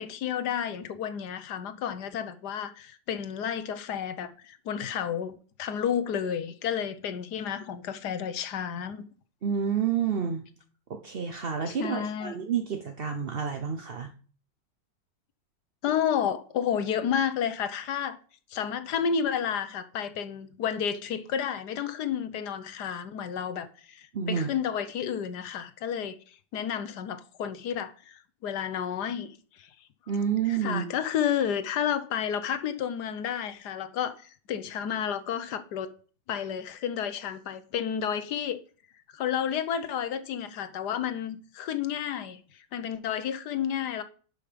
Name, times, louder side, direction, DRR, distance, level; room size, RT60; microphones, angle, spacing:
voice 1, 0.0-9.0 11.7-12.4 15.8-18.2 18.5-29.7 30.5-35.9 36.3-38.6 39.1-44.0, left 8 dB, 65° left, 1.3 m, -31 dB
voice 2, 9.4-10.5 10.9-14.1 24.1-24.5 30.1-30.8, right 7 dB, 50° right, 0.7 m, -29 dB
10.5 x 5.5 x 5.1 m
omnidirectional pair, 2.0 m